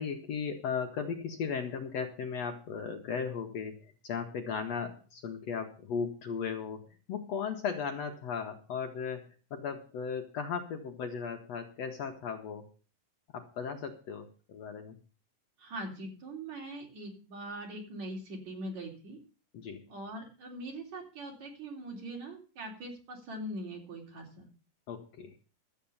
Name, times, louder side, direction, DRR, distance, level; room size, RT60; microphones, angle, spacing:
voice 1, 0.0-6.8 7.1-12.7 13.3-15.0 19.5-19.8 24.9-25.4, left 6 dB, 60° left, 4 dB, 2.0 m, -36 dB
voice 2, 15.6-19.2 19.9-24.5, right 1 dB, 55° right, 1 dB, 4.9 m, -42 dB
12.5 x 8.5 x 7.1 m, 0.37 s
omnidirectional pair, 3.8 m